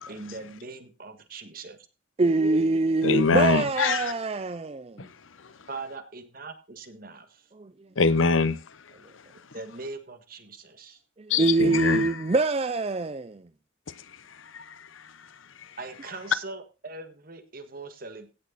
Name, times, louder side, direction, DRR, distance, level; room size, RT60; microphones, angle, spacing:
voice 1, 0.1-1.8 5.7-7.3 9.5-11.0 15.8-18.3, right 3 dB, 45° right, 1.6 m, -41 dB
voice 2, 2.2-5.1 11.2-13.4, right 3 dB, 30° right, 0.4 m, -24 dB
voice 3, 3.0-4.1 5.0-5.1 8.0-8.6 11.3-12.2 14.5-15.0, left 4 dB, 85° left, 0.9 m, -24 dB
16.0 x 6.5 x 4.0 m
head